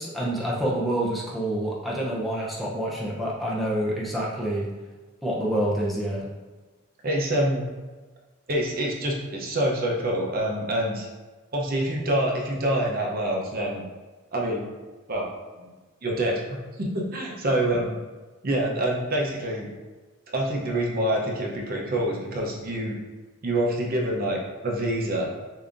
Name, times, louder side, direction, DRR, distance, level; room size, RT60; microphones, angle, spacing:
voice 1, 0.0-4.7 5.2-6.3, right 1 dB, ahead, -5 dB, 0.6 m, -27 dB
voice 2, 7.0-7.6 8.5-11.1 11.5-13.8 14.3-14.6 15.1-15.3 16.0-17.9 18.4-19.7 20.3-23.0 23.4-24.4 24.6-25.3, right 1 dB, 45° right, -1 dB, 0.7 m, -26 dB
6.8 x 2.8 x 2.5 m, 1.3 s
head